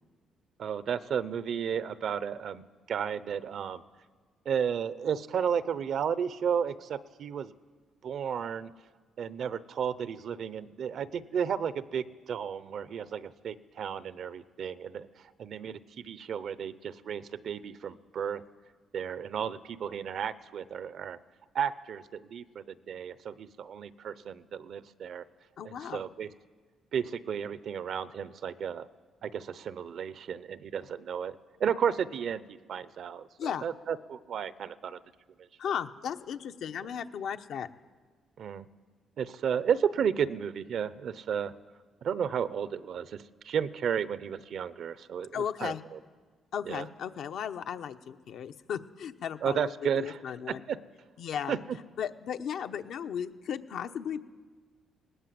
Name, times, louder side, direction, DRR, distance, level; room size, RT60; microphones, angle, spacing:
voice 1, 0.6-3.8 4.4-7.5 8.0-8.7 9.2-18.4 18.9-21.2 21.5-25.2 25.6-26.3 26.9-28.9 29.2-35.0 38.4-38.7 39.2-41.5 42.0-46.0 46.7-46.9 49.4-50.2 50.5-50.8 51.5-51.8, right 7 dB, 55° right, 16 dB, 0.7 m, -33 dB
voice 2, 25.6-26.0 33.4-33.7 35.6-37.7 45.3-45.8 46.5-49.7 50.0-50.6 51.2-51.6 52.0-54.2, left 8 dB, 65° left, 8 dB, 0.9 m, -35 dB
19.0 x 19.0 x 7.7 m, 1.5 s
cardioid pair, 135°, 0 cm